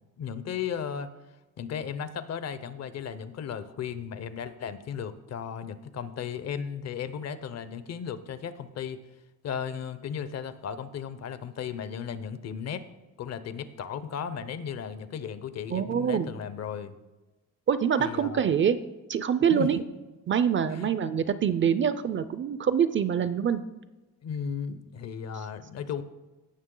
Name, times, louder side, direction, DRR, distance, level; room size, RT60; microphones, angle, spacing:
voice 1, 0.2-1.1 1.6-9.0 9.4-12.9 13.2-17.0 18.0-18.4 19.5-19.7 20.7-20.9 24.2-26.0, left 7 dB, 50° left, 13 dB, 0.7 m, -35 dB
voice 2, 15.7-16.3 17.7-18.8 19.1-19.8 20.3-23.6, right 8 dB, 35° right, 13 dB, 0.4 m, -25 dB
16.5 x 6.0 x 3.8 m, 1.1 s
cardioid pair, 150°, 33 cm